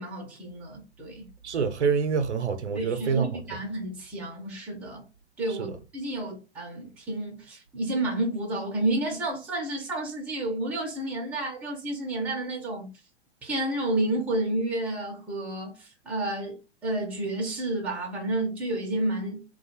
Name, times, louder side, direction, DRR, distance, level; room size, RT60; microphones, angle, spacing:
voice 1, 0.0-1.3 2.7-5.0 5.4-12.9 13.4-19.4, right 1 dB, 5° right, 0.4 m, -30 dB
voice 2, 1.4-3.3 5.5-5.8, right 6 dB, 85° right, 0.5 m, -26 dB
2.3 x 2.1 x 2.9 m
figure-of-eight pair, 115°, 34 cm